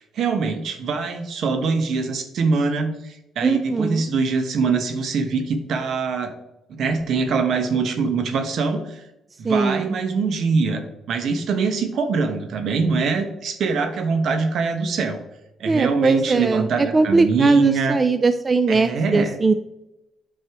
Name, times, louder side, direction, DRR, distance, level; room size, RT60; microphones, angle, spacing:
voice 1, 0.2-2.9 3.4-6.3 6.7-8.8 9.4-10.8 11.1-15.2 15.6-18.0 18.7-19.4, right 4 dB, 70° right, 7 dB, 1.2 m, -23 dB
voice 2, 3.4-4.0 9.4-10.0 15.7-19.5, right 3 dB, 30° right, 10 dB, 0.4 m, -20 dB
8.4 x 5.4 x 3.0 m, 0.88 s
cardioid pair, 90°, 0 cm